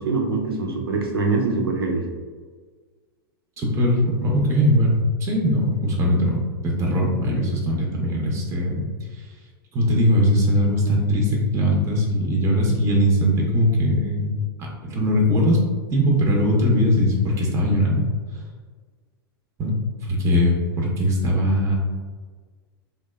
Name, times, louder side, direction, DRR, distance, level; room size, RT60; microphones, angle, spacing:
voice 1, 0.0-2.0, right 3 dB, 85° right, 1 dB, 0.4 m, -23 dB
voice 2, 3.6-8.9 9.1-9.2 9.7-14.3 14.6-15.6 15.9-18.0 18.3-18.4 19.6-21.8, equal, 25° right, -1 dB, 0.5 m, -20 dB
2.9 x 2.0 x 2.2 m, 1.5 s
hypercardioid pair, 100°, 12 cm